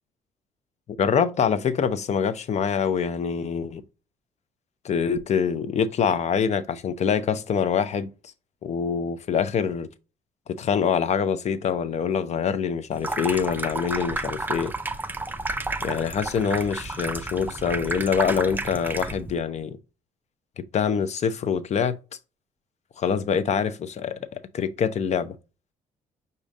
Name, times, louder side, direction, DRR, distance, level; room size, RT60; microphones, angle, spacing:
voice 1, 1.0-3.8 4.8-8.1 8.6-9.9 10.6-14.7 15.8-19.8 20.6-22.0 23.0-25.4, left 7 dB, 50° left, 0.6 m, -25 dB
Water tap faucet / Sink (filling or washing), 12.9-19.4, right 2 dB, 15° right, 0.5 m, -31 dB
5.1 x 2.7 x 3.5 m
supercardioid pair, 65°, 15 cm